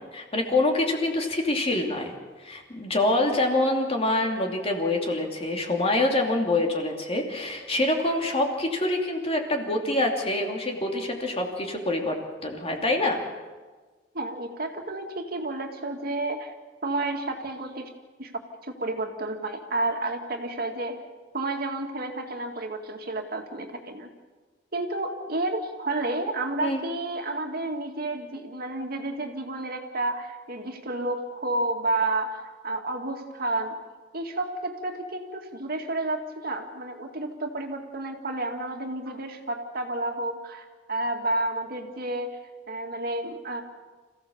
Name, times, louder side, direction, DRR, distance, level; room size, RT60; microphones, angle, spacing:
voice 1, 0.1-2.1 2.4-13.2 26.6-26.8, left 2 dB, 35° left, 2 dB, 2.9 m, -26 dB
voice 2, 14.1-16.5 16.8-17.9 18.2-18.3 18.6-21.0 21.3-24.1 24.7-33.8 34.1-42.4 42.7-43.6, right 2 dB, 55° right, 3 dB, 2.3 m, -31 dB
27.0 x 15.5 x 7.2 m, 1.3 s
head